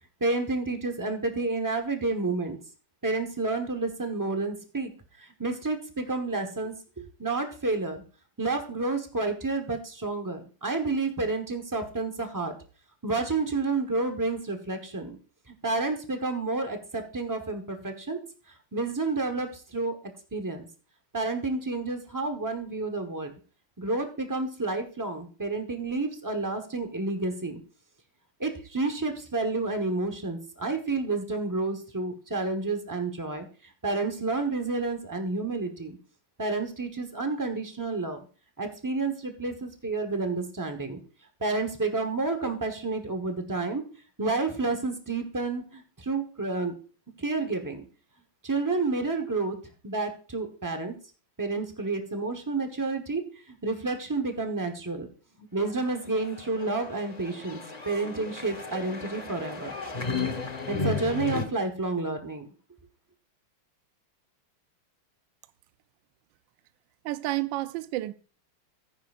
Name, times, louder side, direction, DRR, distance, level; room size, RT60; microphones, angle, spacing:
voice 1, 0.2-2.6 3.0-4.9 5.2-8.0 8.4-12.5 13.0-15.2 15.6-18.2 18.7-19.9 20.3-20.7 21.1-23.3 23.8-27.6 28.4-33.5 33.8-36.0 36.4-38.2 38.6-41.0 41.4-43.8 44.2-46.7 47.2-47.8 48.4-49.6 49.8-50.9 51.4-53.2 53.5-55.1 55.4-59.7 60.7-62.5, right 3 dB, 30° right, 0.3 m, -30 dB
sound 1, 55.8-61.5, left 4 dB, 35° left, 0.6 m, -34 dB
voice 2, 67.0-68.1, right 17 dB, 75° right, 1.2 m, -30 dB
14.5 x 9.7 x 2.4 m
omnidirectional pair, 2.4 m